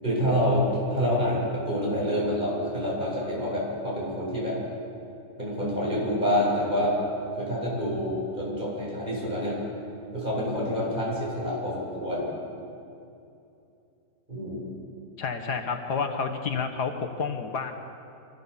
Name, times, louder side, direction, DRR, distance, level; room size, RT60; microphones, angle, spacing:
voice 1, 0.0-4.6 5.4-7.0 7.3-9.6 10.1-12.3 14.3-14.7, equal, 30° right, -5 dB, 8.0 m, -27 dB
voice 2, 15.2-17.7, left 5 dB, 75° left, 5 dB, 1.9 m, -29 dB
25.5 x 16.5 x 7.4 m, 2.7 s
omnidirectional pair, 1.7 m